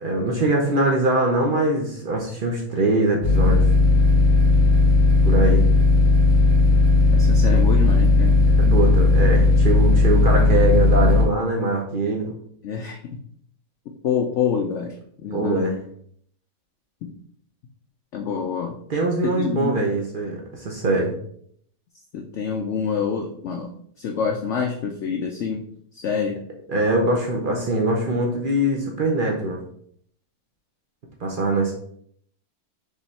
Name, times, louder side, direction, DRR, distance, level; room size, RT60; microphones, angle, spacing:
voice 1, 0.0-3.7 5.2-5.6 8.6-12.3 15.3-15.7 18.9-21.1 26.7-29.6 31.2-31.7, right 2 dB, 70° right, 0 dB, 0.5 m, -22 dB
sound 1, 3.2-11.2, left 3 dB, 35° left, 0.7 m, -16 dB
voice 2, 7.1-8.4 12.6-13.0 14.0-14.9 15.2-15.7 18.1-18.7 19.4-19.9 22.1-23.7 24.0-25.6 25.9-26.4, left 6 dB, 80° left, 2 dB, 0.6 m, -26 dB
3.7 x 3.2 x 4.1 m, 0.65 s
omnidirectional pair, 1.8 m